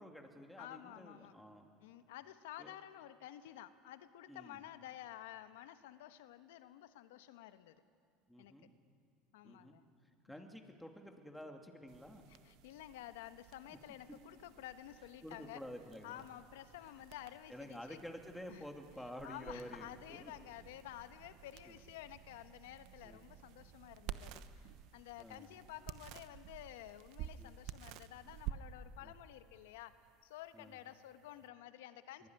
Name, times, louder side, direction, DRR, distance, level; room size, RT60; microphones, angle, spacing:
voice 1, 0.0-1.7 2.6-2.7 4.3-4.6 8.3-8.7 9.4-9.8 10.2-12.2 13.7-13.8 15.2-16.2 17.5-20.3 21.7-21.8 23.0-23.2 25.2-25.5 27.4-27.5 28.9-29.1 30.5-30.8 32.2-32.3, equal, ahead, 3 dB, 2.7 m, -50 dB
voice 2, 0.6-1.4 1.8-7.8 8.4-8.5 9.3-9.8 10.3-10.5 12.3-15.6 16.0-18.0 18.5-18.7 19.2-32.3, left 13 dB, 80° left, 11 dB, 1.2 m, -52 dB
sound 1, 11.9-31.5, right 11 dB, 65° right, 1.0 m, -52 dB
23.0 x 17.5 x 9.7 m, 2.3 s
supercardioid pair, 95°, 0 cm